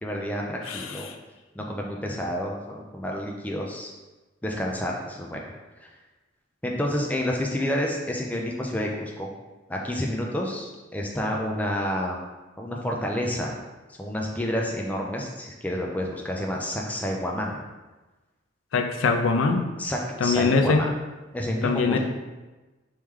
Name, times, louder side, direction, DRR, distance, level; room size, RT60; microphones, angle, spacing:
voice 1, 0.0-1.1 1.6-3.9 4.4-5.4 5.8-5.9 6.6-9.3 9.7-12.2 12.6-13.6 14.0-17.6 19.8-20.9 21.3-22.0, equal, 10° left, -1 dB, 0.4 m, -29 dB
voice 2, 0.6-1.2 18.7-19.6 20.2-20.8 21.6-22.0, left 4 dB, 80° left, 4 dB, 0.4 m, -22 dB
3.1 x 3.1 x 3.6 m, 1.2 s
head